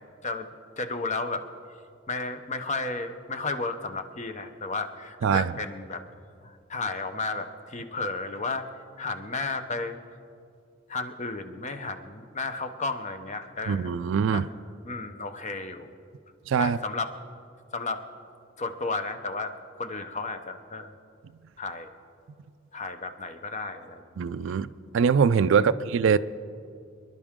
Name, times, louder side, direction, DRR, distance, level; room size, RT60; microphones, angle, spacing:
voice 1, 0.2-1.5 2.1-6.0 6.4-8.7 9.0-10.0 10.9-13.9 14.3-14.4 14.8-15.9 16.6-17.1 17.7-18.0 18.6-19.5 19.8-20.9 21.6-21.9 22.7-24.2 25.5-25.7, left 3 dB, 35° left, 0.8 m, -33 dB
voice 2, 5.2-5.5 13.7-14.5 16.5-16.8 24.2-24.7 24.9-26.2, right 6 dB, 70° right, 0.4 m, -23 dB
25.0 x 11.5 x 3.7 m
head